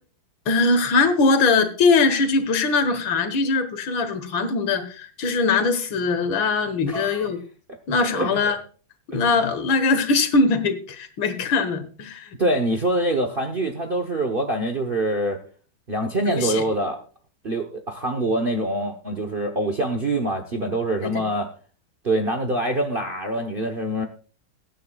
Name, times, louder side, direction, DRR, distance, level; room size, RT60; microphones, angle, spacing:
voice 1, 0.5-7.4 7.9-8.6 9.1-12.3 16.3-16.6 21.0-21.2, left 4 dB, 70° left, 10 dB, 2.1 m, -21 dB
voice 2, 6.9-7.3 7.7-7.8 8.1-8.4 9.1-9.3 12.4-15.4 15.9-17.0 17.4-21.5 22.0-24.0, right 1 dB, 35° right, 5 dB, 0.9 m, -25 dB
21.5 x 9.3 x 2.4 m, 0.38 s
omnidirectional pair, 2.2 m